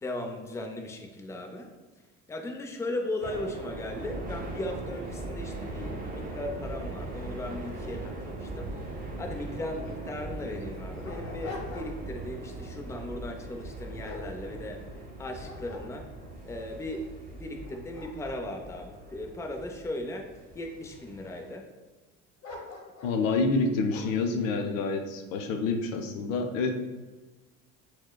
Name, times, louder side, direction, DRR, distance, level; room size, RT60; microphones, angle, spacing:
voice 1, 0.0-1.7 2.3-14.8 15.2-16.1 16.4-20.3 20.5-21.7, left 1 dB, 10° left, 3 dB, 0.4 m, -37 dB
sound 1, 3.2-21.5, right 2 dB, 20° right, 0.9 m, -40 dB
Dog, 9.9-10.0 10.6-12.2 12.6-12.9 13.5-15.0 15.4-16.4 16.9-17.0 17.5-19.8 20.5-21.1 22.4-23.2 23.9-24.3, left 3 dB, 45° left, 1.1 m, -45 dB
voice 2, 23.0-26.8, left 3 dB, 85° left, 5 dB, 0.6 m, -28 dB
6.0 x 2.1 x 2.2 m, 1.2 s
hypercardioid pair, 80°, 38 cm